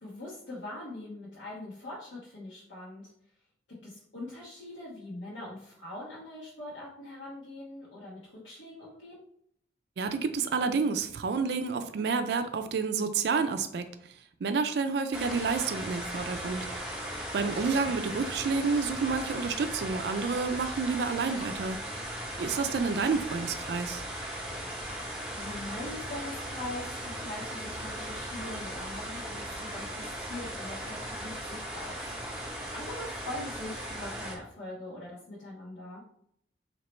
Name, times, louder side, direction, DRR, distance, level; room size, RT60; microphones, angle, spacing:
voice 1, 0.0-3.1 3.7-9.2 22.7-22.9 24.7-32.0 32.3-36.0, left 1 dB, 90° left, -8 dB, 1.1 m, -42 dB
voice 2, 10.0-13.9 14.4-16.7 17.3-21.8 22.4-24.0, right 4 dB, 65° right, 8 dB, 0.3 m, -29 dB
sound 1, 15.1-34.3, right 1 dB, 5° right, 0.7 m, -38 dB
3.0 x 2.8 x 4.3 m, 0.68 s
head